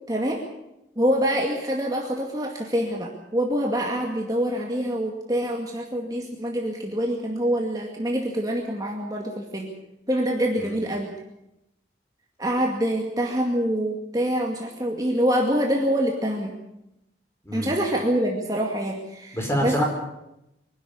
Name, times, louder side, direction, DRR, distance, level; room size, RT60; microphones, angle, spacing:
voice 1, 0.1-0.4 1.0-9.7 10.1-11.1 12.4-16.5 17.5-19.7, equal, 20° right, 0 dB, 2.2 m, -25 dB
voice 2, 19.3-19.8, equal, 15° left, 1 dB, 5.0 m, -26 dB
24.5 x 12.0 x 9.7 m, 0.88 s
head